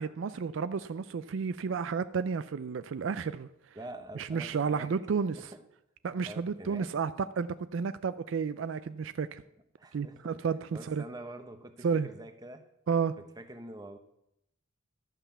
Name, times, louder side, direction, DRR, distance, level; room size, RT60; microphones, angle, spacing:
voice 1, 0.0-3.5 4.2-5.5 6.0-7.1 7.4-9.4 9.9-11.0 11.8-12.1 12.9-13.2, right 5 dB, 65° right, 0.4 m, -32 dB
voice 2, 3.7-4.9 5.4-5.6 6.3-6.9 9.8-10.4 10.7-12.6 13.2-14.0, right 1 dB, 20° right, 0.9 m, -46 dB
12.0 x 5.6 x 7.0 m
head